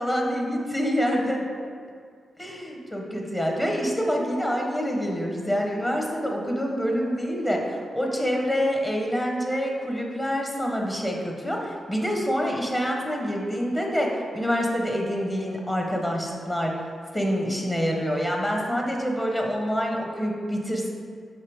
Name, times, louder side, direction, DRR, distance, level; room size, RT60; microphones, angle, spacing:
voice 1, 0.0-1.4 2.4-16.7 17.1-20.9, equal, 15° left, 0 dB, 1.0 m, -26 dB
6.5 x 4.5 x 3.5 m, 2.1 s
cardioid pair, 70°, 0 cm